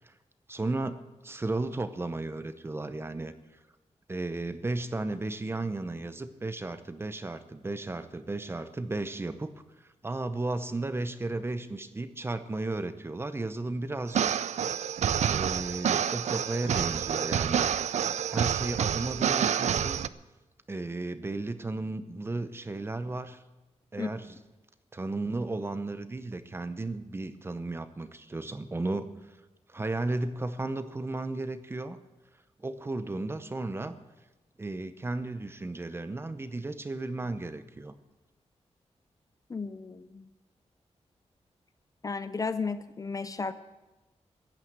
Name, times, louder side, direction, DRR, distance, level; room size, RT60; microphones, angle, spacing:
voice 1, 0.5-3.3 4.1-9.5 10.0-14.4 15.3-17.7 18.3-20.0 20.7-23.4 23.9-24.4 24.9-29.1 29.7-32.0 32.6-33.9 34.6-37.9, right 2 dB, 20° right, 11 dB, 0.7 m, -34 dB
sound 1, 14.1-20.1, right 8 dB, 85° right, 0.4 m, -28 dB
voice 2, 39.5-40.1 42.0-43.5, left 4 dB, 30° left, 12 dB, 0.5 m, -33 dB
15.0 x 9.2 x 8.0 m, 1.1 s
wide cardioid pair, 180°, 12 cm